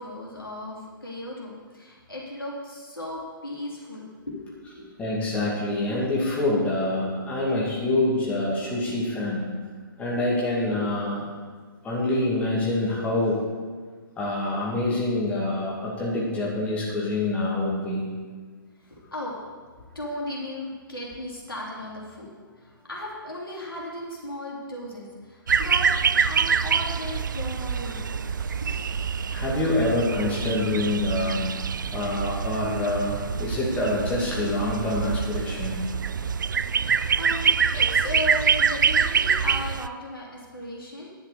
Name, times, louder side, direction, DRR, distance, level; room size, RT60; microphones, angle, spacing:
voice 1, 0.0-4.9 18.8-19.4 19.9-28.3 28.6-28.8 36.8-41.1, left 1 dB, 80° left, -4 dB, 3.0 m, -36 dB
voice 2, 5.0-9.4 10.0-11.3 11.8-13.4 14.2-18.1 29.3-31.4 31.9-35.8 37.0-37.2, left 2 dB, 10° left, -6 dB, 2.2 m, -26 dB
sound 1, 25.5-39.9, right 6 dB, 60° right, 0.4 m, -25 dB
10.5 x 5.8 x 7.0 m, 1.5 s
figure-of-eight pair, 125°, 12 cm